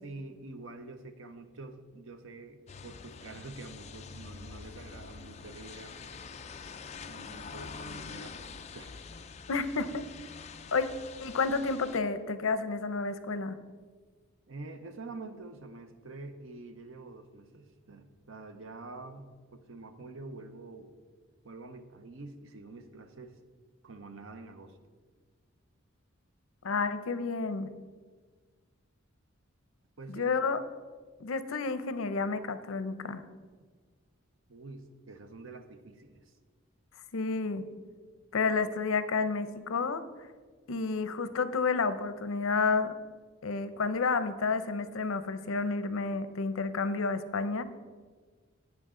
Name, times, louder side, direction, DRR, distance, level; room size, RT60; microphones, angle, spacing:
voice 1, 0.0-6.0 7.0-9.0 14.5-20.9 21.4-23.3 23.8-24.8 30.0-30.3 34.5-36.3, right 3 dB, 75° right, 8 dB, 0.8 m, -46 dB
sound 1, 2.7-12.0, left 5 dB, 35° left, 0.4 m, -45 dB
voice 2, 9.5-10.1 10.7-10.9 11.2-13.6 26.6-27.7 30.1-30.6 31.2-33.2 37.1-37.6 38.3-40.0 40.7-42.9 43.4-47.6, left 4 dB, 85° left, 12 dB, 0.6 m, -30 dB
17.0 x 6.0 x 3.8 m, 1.5 s
head